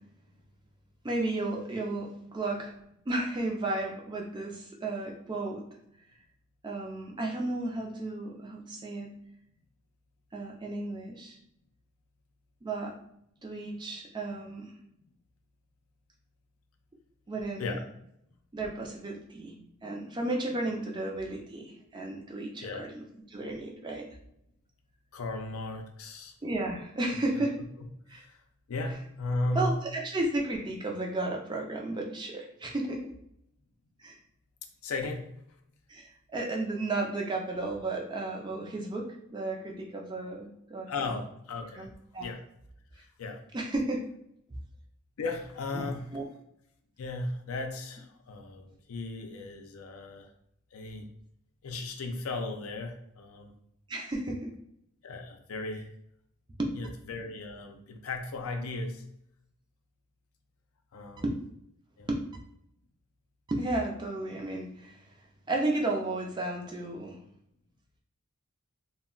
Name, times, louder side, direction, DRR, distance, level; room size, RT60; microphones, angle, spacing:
voice 1, 1.0-2.8 3.1-5.6 6.6-9.1 10.3-11.4 12.6-12.9 13.4-14.7 17.3-17.8 18.5-23.0 23.3-24.1 26.4-27.6 28.1-28.2 29.6-33.1 34.0-34.1 35.9-41.1 41.8-42.3 43.5-44.0 45.7-46.3 53.9-54.5 56.6-56.7 61.2-61.3 62.1-62.2 63.5-65.0 65.5-67.2, right 2 dB, 20° right, 0 dB, 0.4 m, -33 dB
voice 2, 25.1-26.3 27.8-28.4 28.7-29.8 34.8-35.3 40.9-41.9 42.2-42.4 42.9-43.4 45.2-46.1 47.0-50.3 50.7-51.1 51.6-53.5 55.0-55.9 56.7-59.0 60.9-61.2 62.0-62.1, left 2 dB, 75° left, 5 dB, 0.4 m, -36 dB
2.2 x 2.1 x 3.7 m, 0.74 s
head